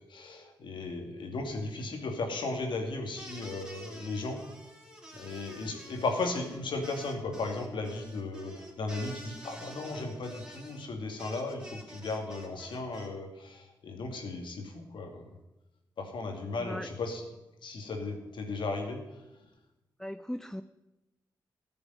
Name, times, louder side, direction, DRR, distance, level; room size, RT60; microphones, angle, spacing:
voice 1, 0.0-4.4 5.1-15.2 16.0-17.3 17.6-19.0, left 3 dB, 75° left, 3 dB, 2.6 m, -36 dB
sound 1, 3.2-13.1, equal, 10° right, 4.1 m, -49 dB
voice 2, 16.6-16.9 20.0-20.6, equal, 5° left, 11 dB, 0.6 m, -38 dB
13.5 x 7.0 x 9.6 m, 1.0 s
supercardioid pair, 45°, 8 cm